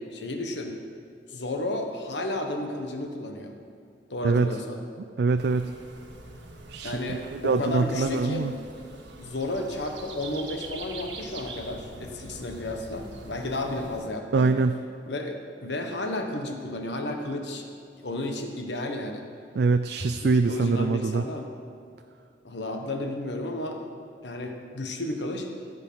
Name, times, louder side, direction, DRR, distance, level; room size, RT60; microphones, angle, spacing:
voice 1, 0.1-0.8 1.3-3.5 4.1-4.8 6.8-8.5 9.2-14.5 15.1-17.6 18.0-19.3 20.2-21.5 22.4-23.8 24.2-25.5, left 1 dB, 75° left, 4 dB, 1.3 m, -32 dB
voice 2, 4.2-4.6 5.2-5.7 6.7-8.5 14.3-14.7 19.5-21.2, right 4 dB, 60° right, 9 dB, 0.4 m, -24 dB
sound 1, 5.4-14.0, right 3 dB, 75° right, 1.4 m, -44 dB
14.5 x 8.2 x 5.6 m, 2.4 s
head